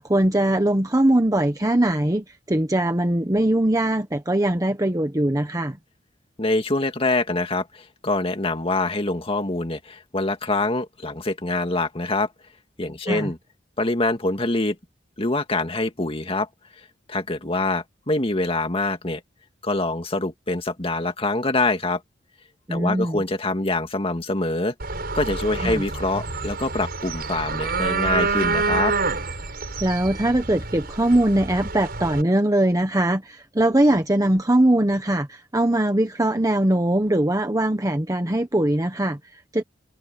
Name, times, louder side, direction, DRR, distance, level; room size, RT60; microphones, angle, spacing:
voice 1, 0.0-5.8 13.1-13.3 22.7-23.2 25.6-25.8 29.8-39.6, right 1 dB, 20° right, 1.1 m, -21 dB
voice 2, 6.4-12.3 12.8-13.4 13.8-14.8 15.2-16.5 17.1-19.2 19.6-22.0 22.7-24.7 25.1-28.9, left 2 dB, 30° left, 2.1 m, -25 dB
sound 1, 24.8-32.2, right 4 dB, 55° right, 6.4 m, -27 dB
head